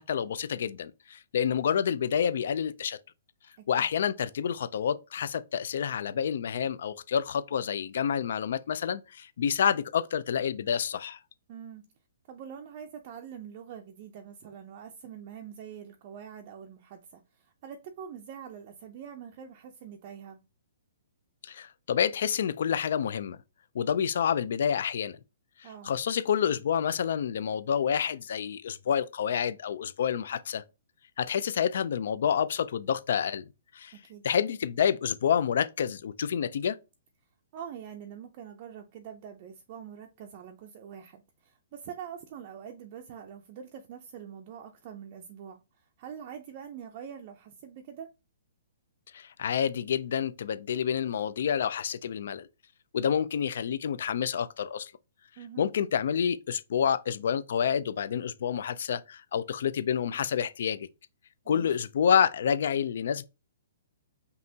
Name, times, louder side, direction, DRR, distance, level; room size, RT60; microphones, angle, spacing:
voice 1, 0.0-3.0 3.7-11.2 21.5-23.4 23.7-25.2 25.8-30.6 31.2-33.5 33.7-33.9 34.2-36.8 49.1-52.5 52.9-54.9 55.6-60.9 61.5-63.2, left 8 dB, 60° left, 0.3 m, -28 dB
voice 2, 11.5-11.8 12.3-20.4 25.6-25.9 33.9-34.2 37.5-48.1 55.4-55.7 61.4-61.8, right 8 dB, 30° right, 0.4 m, -44 dB
5.4 x 2.9 x 2.7 m
hypercardioid pair, 165°, 0 cm